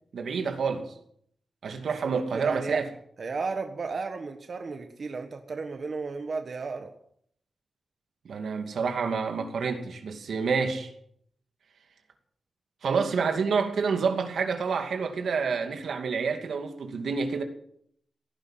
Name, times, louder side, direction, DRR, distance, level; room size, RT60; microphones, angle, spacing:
voice 1, 0.1-0.9 1.6-2.9 8.2-10.9 12.8-17.4, right 5 dB, 80° right, 2.4 m, -28 dB
voice 2, 2.1-2.8 3.2-6.9 12.8-12.9, right 4 dB, 45° right, 1.4 m, -34 dB
17.5 x 11.0 x 7.5 m
wide cardioid pair, 140°, 0 cm